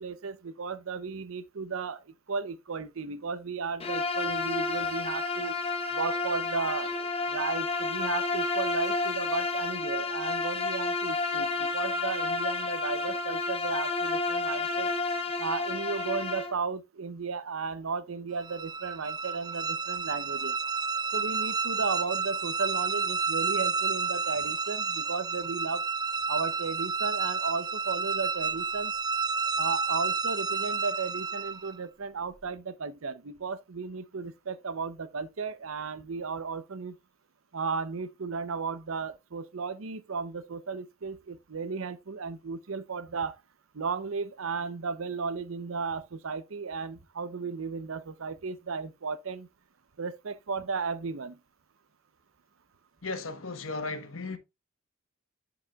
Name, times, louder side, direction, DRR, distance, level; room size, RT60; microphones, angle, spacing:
voice 1, 0.0-2.0 2.3-5.5 5.9-6.9 7.3-14.9 15.4-20.6 21.1-25.8 26.3-28.9 29.6-37.0 37.5-43.3 43.7-49.5 50.0-51.4, right 5 dB, 70° right, 0.7 m, -34 dB
Bowed string instrument, 3.8-16.6, left 3 dB, 30° left, 1.0 m, -30 dB
sound 1, 18.4-31.8, right 5 dB, 20° right, 0.5 m, -30 dB
voice 2, 53.0-54.4, left 3 dB, 65° left, 1.1 m, -35 dB
11.0 x 4.8 x 2.3 m
head